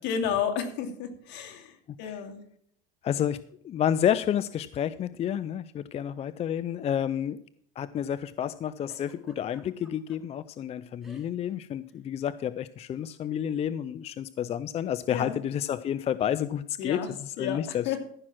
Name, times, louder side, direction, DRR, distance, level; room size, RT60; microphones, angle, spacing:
voice 1, 0.0-2.4 15.1-15.4 16.8-18.0, left 8 dB, 65° left, 4 dB, 2.5 m, -32 dB
voice 2, 3.0-3.4 3.6-7.4 7.8-17.1 17.4-18.0, left 9 dB, 35° left, 15 dB, 0.4 m, -30 dB
Giggle, 8.9-10.2 11.0-11.5 11.8-12.0 12.9-13.2, right 1 dB, ahead, 4.7 m, -56 dB
14.5 x 6.2 x 6.1 m, 0.65 s
cardioid pair, 120°, 19 cm